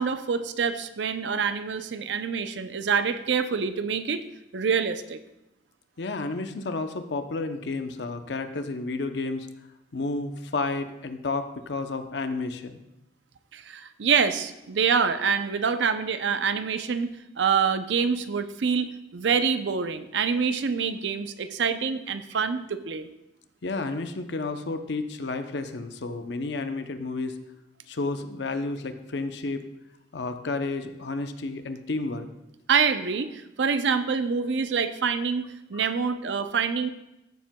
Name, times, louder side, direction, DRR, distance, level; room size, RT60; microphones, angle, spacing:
voice 1, 0.0-4.2 4.5-5.2 13.5-23.1 32.7-36.9, right 6 dB, 75° right, 10 dB, 0.5 m, -26 dB
voice 2, 6.0-9.5 9.9-12.8 23.6-27.4 27.9-29.6 30.1-32.3 35.7-35.9, left 3 dB, 70° left, 8 dB, 0.7 m, -31 dB
14.5 x 7.4 x 2.2 m, 0.92 s
head